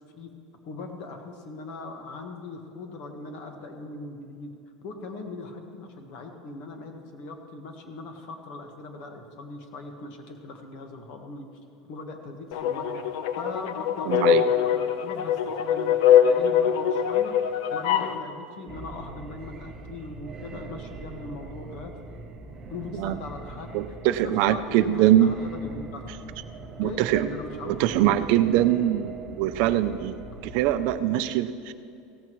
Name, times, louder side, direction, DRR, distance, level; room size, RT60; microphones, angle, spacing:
voice 1, 0.7-4.5 4.8-11.5 11.9-13.0 13.3-22.0 22.7-23.8 24.1-26.1 26.7-28.3, left 3 dB, 50° left, 4 dB, 1.5 m, -40 dB
sound 1, 12.5-18.2, left 9 dB, 70° left, 0.8 m, -23 dB
voice 2, 14.0-14.4 23.0-23.2 23.7-25.3 26.8-27.3 27.6-30.2 30.4-31.7, right 12 dB, 50° right, 12 dB, 0.4 m, -23 dB
sound 2, 18.7-31.0, right 3 dB, 20° right, 0.9 m, -42 dB
16.5 x 14.5 x 3.1 m, 2.5 s
supercardioid pair, 165°, 2 cm